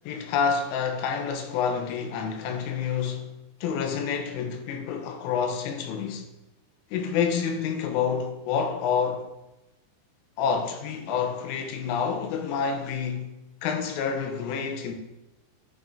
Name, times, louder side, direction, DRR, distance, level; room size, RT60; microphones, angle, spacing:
voice 1, 0.1-3.3 3.6-6.3 6.9-9.3 10.4-13.3 13.6-15.0, left 6 dB, 90° left, 3.5 m, -28 dB
10.5 x 6.5 x 2.8 m
omnidirectional pair, 5.6 m